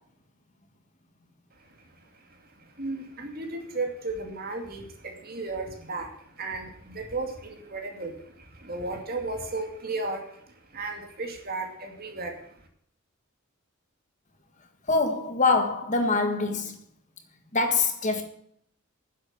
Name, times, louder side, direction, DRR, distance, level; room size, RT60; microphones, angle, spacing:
voice 1, 1.6-12.7, right 3 dB, 45° right, 2.4 m, -35 dB
voice 2, 14.9-16.8 17.5-18.2, left 3 dB, 35° left, 1.7 m, -24 dB
10.0 x 7.8 x 8.9 m
head